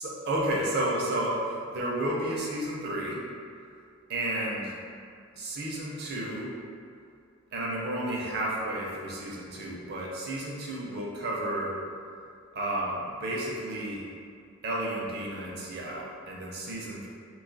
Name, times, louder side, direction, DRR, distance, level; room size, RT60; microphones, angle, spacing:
voice 1, 0.0-3.2 4.1-4.7 5.3-6.5 7.5-11.7 12.5-14.0 14.6-17.1, right 1 dB, 50° right, -4 dB, 0.6 m, -32 dB
2.6 x 2.4 x 3.9 m, 2.4 s
head